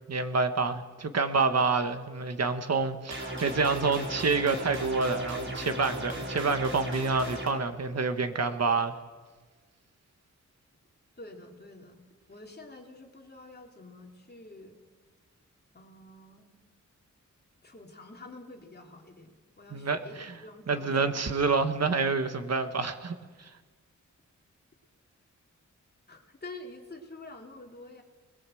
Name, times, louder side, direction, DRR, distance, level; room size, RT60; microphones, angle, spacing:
voice 1, 0.1-8.9 19.7-20.3 20.7-23.5, right 4 dB, 55° right, 8 dB, 1.5 m, -28 dB
sound 1, 3.1-7.5, right 1 dB, 40° right, 5.1 m, -36 dB
voice 2, 11.2-12.0 12.3-14.8 15.7-16.5 17.6-21.3 26.1-28.0, left 2 dB, 35° left, 2 dB, 3.1 m, -48 dB
25.5 x 20.5 x 7.8 m, 1.4 s
wide cardioid pair, 160°, 30 cm